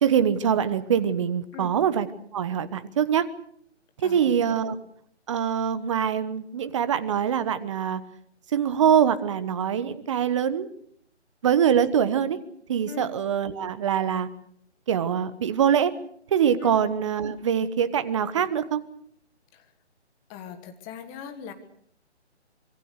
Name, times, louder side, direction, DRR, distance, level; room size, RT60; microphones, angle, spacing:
voice 1, 0.0-2.1 2.3-3.2 4.0-4.8 5.3-8.0 8.5-10.7 11.4-12.4 12.7-14.3 14.9-15.9 16.3-18.8, right 8 dB, 25° right, 13 dB, 1.2 m, -23 dB
voice 2, 4.0-4.6 12.9-13.1 16.6-16.8 19.5-19.7 20.3-21.5, left 8 dB, 15° left, 8 dB, 1.5 m, -40 dB
25.5 x 22.5 x 6.6 m, 0.64 s
figure-of-eight pair, 155°, 34 cm